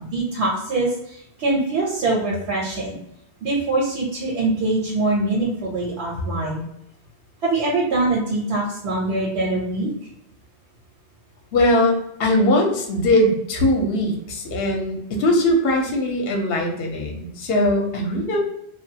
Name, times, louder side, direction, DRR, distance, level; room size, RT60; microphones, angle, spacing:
voice 1, 0.1-3.0 3.4-6.6 7.4-9.9, right 2 dB, 75° right, -4 dB, 1.0 m, -23 dB
voice 2, 11.5-18.4, left 1 dB, 65° left, 1 dB, 0.8 m, -20 dB
2.3 x 2.3 x 2.7 m, 0.77 s
omnidirectional pair, 1.1 m